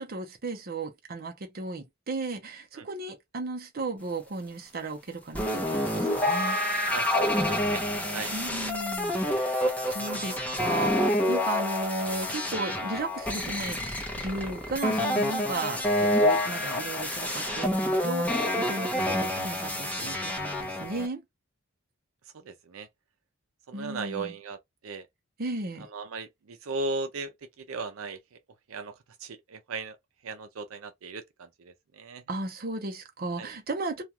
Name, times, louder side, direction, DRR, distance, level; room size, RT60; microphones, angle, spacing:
voice 1, 0.0-6.6 8.3-9.6 9.8-21.2 23.7-24.3 25.4-25.9 32.3-34.0, right 3 dB, 45° right, 0.7 m, -35 dB
sound 1, 5.3-21.1, left 1 dB, 5° left, 0.7 m, -28 dB
voice 2, 6.9-7.8 8.1-8.3 9.3-9.4 18.8-18.9 20.8-20.9 22.3-22.9 23.7-25.1 25.8-28.4 28.7-30.0 30.2-32.2 33.4-33.5, right 3 dB, 85° right, 0.5 m, -37 dB
2.4 x 2.3 x 2.8 m
head